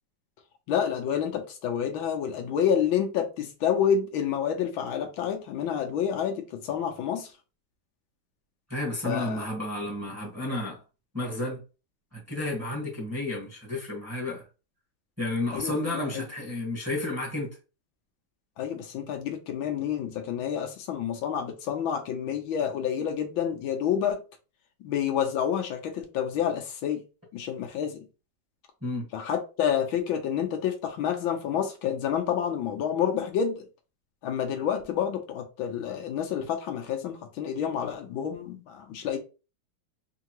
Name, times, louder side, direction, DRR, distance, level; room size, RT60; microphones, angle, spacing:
voice 1, 0.7-7.3 9.0-9.5 15.5-16.3 18.6-24.2 24.8-27.0 27.3-28.0 29.1-33.6 34.2-39.2, left 8 dB, 80° left, 1.5 m, -29 dB
voice 2, 8.7-10.8 11.1-11.6 12.1-14.4 15.2-17.5 28.8-29.1, left 2 dB, 10° right, 1.3 m, -31 dB
4.6 x 2.8 x 3.0 m
omnidirectional pair, 2.2 m